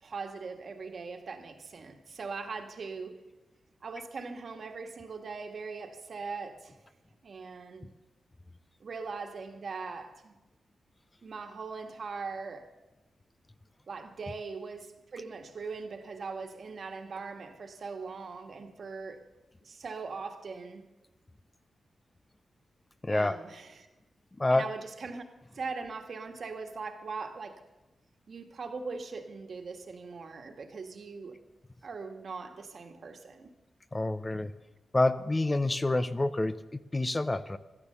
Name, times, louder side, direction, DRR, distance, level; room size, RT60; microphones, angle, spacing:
voice 1, 0.0-3.2 3.8-6.8 7.2-7.9 8.8-10.3 11.2-12.7 13.9-19.2 19.6-20.8 23.1-23.9 24.5-25.2 25.5-27.6 28.3-31.4 31.8-33.5, right 4 dB, 55° right, 5 dB, 1.6 m, -40 dB
voice 2, 23.0-23.4 24.4-24.7 33.9-34.5 34.9-37.6, left 2 dB, 20° left, 12 dB, 0.5 m, -28 dB
16.5 x 12.0 x 6.8 m, 1.1 s
wide cardioid pair, 120°, 0 cm